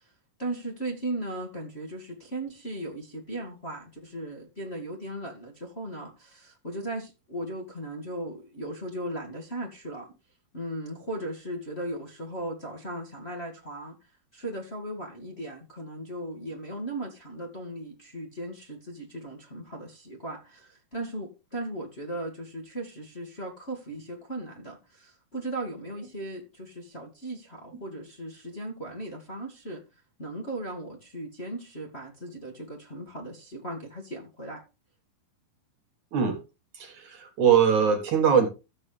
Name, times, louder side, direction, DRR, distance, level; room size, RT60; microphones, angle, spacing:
voice 1, 0.4-10.1 10.5-14.0 14.3-29.8 30.2-34.6, right 1 dB, 20° left, 2.0 m, -37 dB
voice 2, 36.7-38.5, right 7 dB, 60° right, 2.6 m, -22 dB
14.5 x 8.0 x 3.5 m
omnidirectional pair, 4.4 m